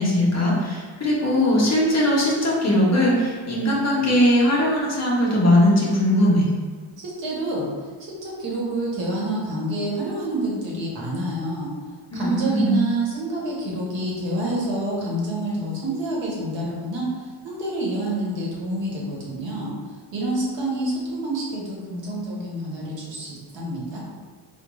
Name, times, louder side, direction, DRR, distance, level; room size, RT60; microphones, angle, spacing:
voice 1, 0.0-6.5 12.1-12.8, left 1 dB, 30° left, -4 dB, 0.8 m, -20 dB
voice 2, 7.0-7.7 8.0-11.7 12.1-24.0, right 1 dB, 60° right, -4 dB, 1.1 m, -28 dB
3.8 x 2.3 x 3.1 m, 1.5 s
cardioid pair, 105°, 49 cm